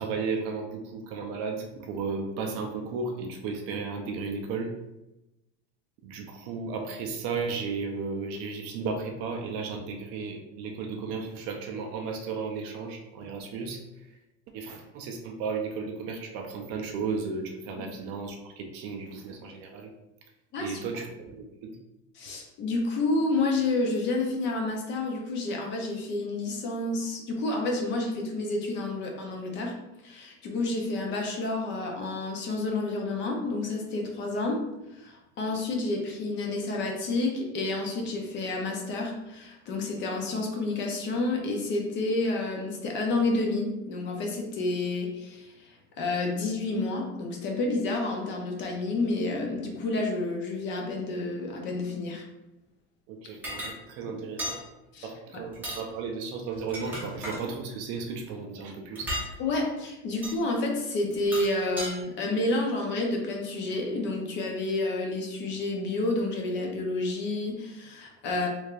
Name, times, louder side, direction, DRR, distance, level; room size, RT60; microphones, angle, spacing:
voice 1, 0.0-4.7 6.0-14.2 14.5-19.9 20.6-21.8 53.1-54.6 55.0-59.1, right 4 dB, 45° right, 3 dB, 0.4 m, -34 dB
voice 2, 22.2-29.7 30.0-34.6 34.9-52.2 54.1-54.2 54.9-55.1 59.4-68.5, left 2 dB, 35° left, 1 dB, 0.5 m, -29 dB
sound 1, 53.4-53.7 54.4-54.6 55.5-55.8 56.5-57.4 59.0-59.3 60.2-60.4 61.1-61.9, equal, 5° right, 0.7 m, -35 dB
3.2 x 3.2 x 2.4 m, 0.95 s
cardioid pair, 160°, 35 cm